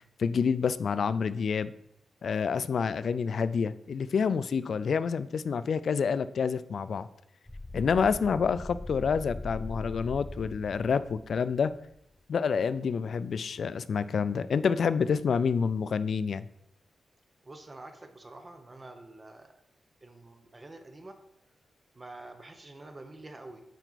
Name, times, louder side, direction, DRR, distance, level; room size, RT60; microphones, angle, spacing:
voice 1, 0.2-1.7 2.2-7.1 7.7-11.7 12.3-16.5, left 6 dB, 60° left, 15 dB, 0.3 m, -28 dB
sound 1, 7.5-12.1, left 2 dB, 10° left, 0.6 m, -41 dB
voice 2, 17.4-19.5 20.0-21.1 21.9-23.6, right 2 dB, 25° right, 7 dB, 0.7 m, -47 dB
9.1 x 4.4 x 4.0 m, 0.77 s
wide cardioid pair, 140°, 0 cm